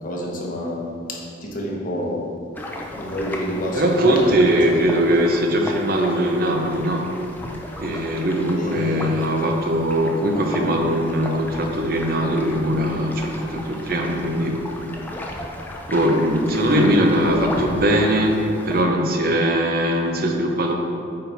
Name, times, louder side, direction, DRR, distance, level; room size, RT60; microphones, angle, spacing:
voice 1, 0.0-2.3 2.9-4.3 4.7-4.9 7.9-8.1 8.6-9.2, equal, 45° left, -1 dB, 1.1 m, -29 dB
sound 1, 2.5-18.8, left 1 dB, 10° left, 0.5 m, -35 dB
voice 2, 3.8-7.1 7.8-14.6 15.9-18.4 18.7-20.7, right 1 dB, 50° right, 2 dB, 0.7 m, -20 dB
8.7 x 4.3 x 4.1 m, 2.5 s
head